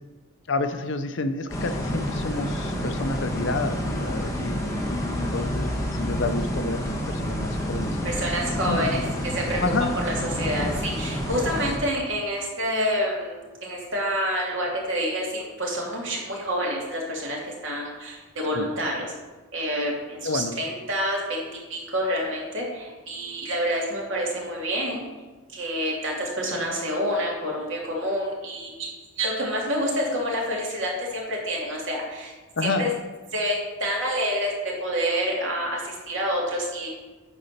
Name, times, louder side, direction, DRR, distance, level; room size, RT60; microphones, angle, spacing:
voice 1, 0.5-8.2 8.7-9.0 9.6-9.9 18.5-18.7 20.2-20.5 32.6-32.9, left 3 dB, 60° left, 9 dB, 0.7 m, -29 dB
sound 1, 1.5-11.8, equal, 15° left, 1.2 m, -29 dB
voice 2, 8.0-19.1 19.5-21.4 21.7-25.1 25.5-28.9 29.2-32.3 32.6-32.9 33.3-34.5 34.8-36.9, equal, 65° right, -3 dB, 2.7 m, -28 dB
9.9 x 4.1 x 6.7 m, 1.3 s
head